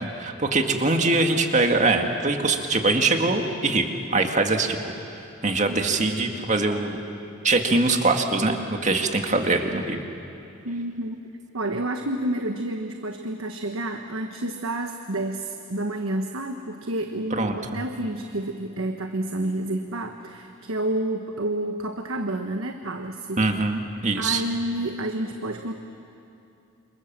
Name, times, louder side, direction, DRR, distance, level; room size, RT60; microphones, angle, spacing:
voice 1, 0.0-4.8 5.4-7.0 7.4-10.0 17.3-17.8 23.4-24.4, right 3 dB, 35° right, 4 dB, 2.0 m, -23 dB
voice 2, 5.7-6.4 10.6-11.3 11.5-23.4 24.2-25.7, right 1 dB, 85° right, 5 dB, 1.3 m, -29 dB
28.0 x 27.5 x 7.5 m, 2.7 s
head